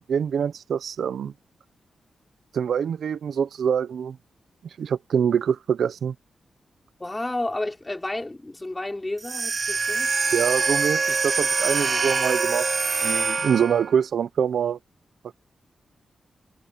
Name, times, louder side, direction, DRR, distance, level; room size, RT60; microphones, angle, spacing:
voice 1, 0.0-1.3 2.5-4.2 4.8-6.1 10.3-12.7 13.0-14.8, right 7 dB, 75° right, 0.7 m, -25 dB
voice 2, 7.0-10.1, left 2 dB, 15° left, 5.8 m, -31 dB
sound 1, 9.2-14.0, right 4 dB, 35° right, 0.3 m, -24 dB
wide cardioid pair, 175°, 0 cm